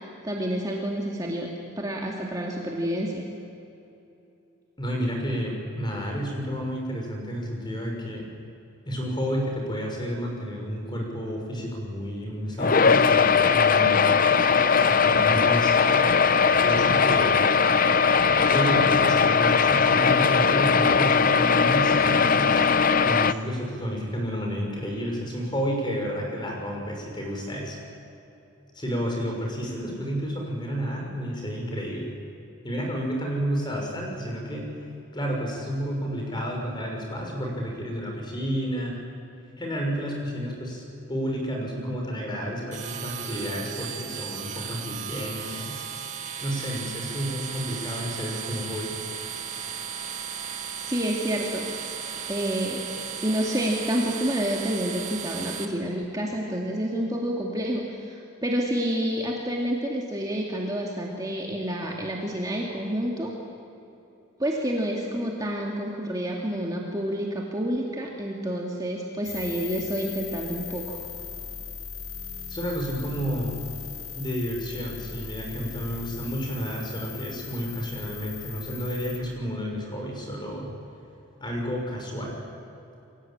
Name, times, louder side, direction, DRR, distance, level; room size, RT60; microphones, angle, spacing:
voice 1, 0.2-3.2 50.9-51.7 52.3-52.9 53.2-63.3 64.4-71.0, equal, 15° right, -2 dB, 2.5 m, -29 dB
voice 2, 4.8-8.3 8.8-14.0 14.9-16.1 16.6-17.4 18.5-22.6 23.0-27.8 28.7-32.1 32.6-34.7 35.1-39.0 39.6-45.8 46.4-48.9 72.5-73.5 74.1-80.7 81.4-82.4, equal, 20° left, 0 dB, 6.1 m, -31 dB
sound 1, 12.6-23.3, left 5 dB, 40° left, 0.7 m, -20 dB
sound 2, 42.7-55.7, right 7 dB, 35° right, 2.0 m, -35 dB
sound 3, 69.2-79.2, left 6 dB, 70° left, 5.4 m, -39 dB
29.0 x 23.0 x 8.8 m, 2.9 s
head